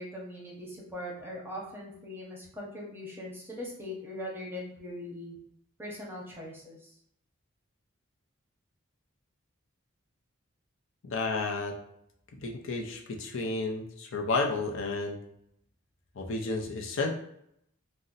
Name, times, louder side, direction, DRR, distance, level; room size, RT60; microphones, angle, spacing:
voice 1, 0.0-5.4 5.8-6.9, left 1 dB, 10° right, -3 dB, 0.8 m, -41 dB
voice 2, 11.0-11.7 12.4-15.2 16.2-17.1, left 3 dB, 65° left, 1 dB, 0.5 m, -31 dB
2.6 x 2.1 x 3.8 m, 0.74 s
head